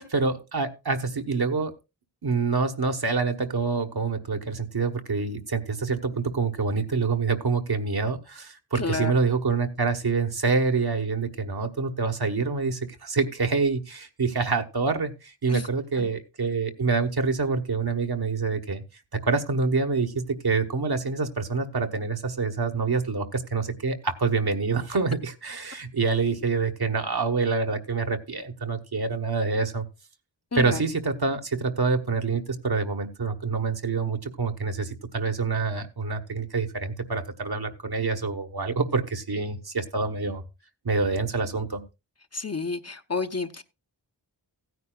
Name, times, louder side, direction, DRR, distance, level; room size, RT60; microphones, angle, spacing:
voice 1, 0.0-1.7 2.2-18.8 19.1-29.9 30.6-40.4 40.8-41.8, right 4 dB, 60° right, 1.2 m, -26 dB
voice 2, 8.7-9.1 15.5-15.7 16.0-16.1 30.5-30.8 42.3-43.6, left 4 dB, 35° left, 0.8 m, -30 dB
16.0 x 9.5 x 2.3 m
wide cardioid pair, 40°, 42 cm